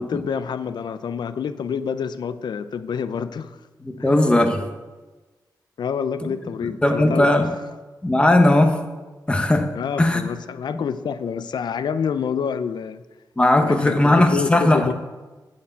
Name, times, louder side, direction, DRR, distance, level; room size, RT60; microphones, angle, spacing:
voice 1, 0.0-3.6 3.8-4.1 5.8-7.5 9.7-13.0 13.6-14.9, left 7 dB, 75° left, 12 dB, 0.5 m, -28 dB
voice 2, 3.8-4.6 6.6-7.5 8.0-8.8 9.3-9.7 10.0-10.3 13.4-14.9, left 1 dB, 15° left, 6 dB, 0.9 m, -18 dB
10.5 x 4.6 x 8.1 m, 1.2 s
wide cardioid pair, 165°, 7 cm